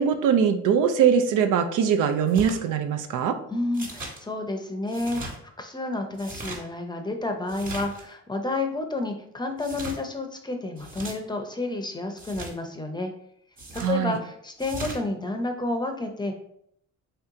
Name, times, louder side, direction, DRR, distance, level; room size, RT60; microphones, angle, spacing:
voice 1, 0.0-3.4 13.8-14.2, right 7 dB, 85° right, 6 dB, 0.5 m, -22 dB
sound 1, 2.3-2.6 3.7-4.2 4.9-5.3 6.1-6.6 7.5-8.0 9.6-10.0 10.8-11.1 12.2-12.5 13.6-13.9 14.6-15.0, right 1 dB, 30° right, 1.4 m, -38 dB
voice 2, 3.5-13.1 13.7-16.4, left 2 dB, 15° left, 5 dB, 0.6 m, -30 dB
3.4 x 2.8 x 3.6 m, 0.69 s
cardioid pair, 90°, 30 cm